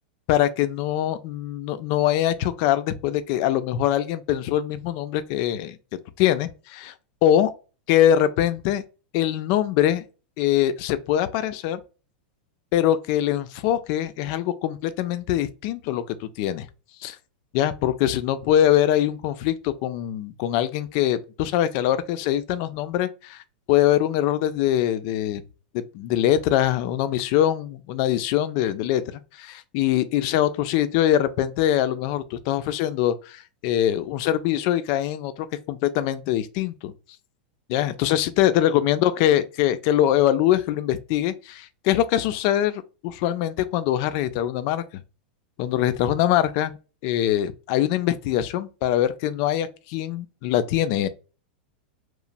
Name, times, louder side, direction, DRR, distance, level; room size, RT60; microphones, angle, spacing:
voice 1, 0.3-5.8 6.2-6.9 7.2-7.5 7.9-8.8 9.1-10.0 10.4-11.8 12.7-16.7 17.0-17.2 17.5-23.4 23.7-25.4 25.7-36.9 37.7-44.8 45.6-46.7 47.0-51.1, left 11 dB, 45° left, 0.3 m, -23 dB
2.9 x 2.0 x 2.5 m
supercardioid pair, 145°, 5 cm